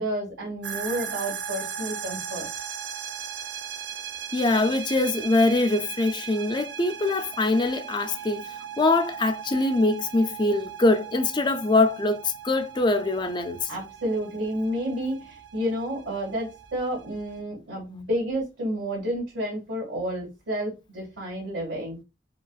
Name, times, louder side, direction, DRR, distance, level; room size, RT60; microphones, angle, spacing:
voice 1, 0.0-2.5 13.7-22.0, equal, 85° right, 2.1 m, -30 dB
sound 1, 0.6-17.4, right 8 dB, 70° right, 0.4 m, -38 dB
voice 2, 4.3-8.5 8.8-13.6, left 2 dB, 25° left, 0.4 m, -23 dB
5.2 x 2.3 x 2.4 m
head